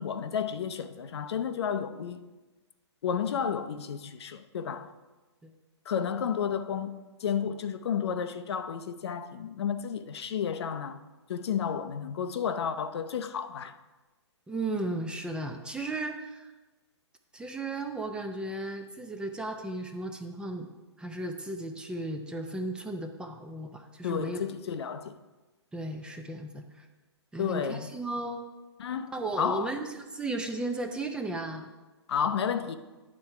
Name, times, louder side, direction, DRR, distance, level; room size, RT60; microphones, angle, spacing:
voice 1, 0.0-2.3 3.0-4.9 5.9-11.0 11.3-13.8 24.0-25.2 27.4-27.9 28.8-29.7 32.1-32.8, left 7 dB, 65° left, 0.6 m, -32 dB
voice 2, 14.5-16.5 17.3-20.7 21.0-24.4 25.7-26.8 27.3-28.5 29.1-31.7, right 2 dB, 5° right, 0.5 m, -35 dB
9.7 x 4.3 x 5.8 m
hypercardioid pair, 130°, 15 cm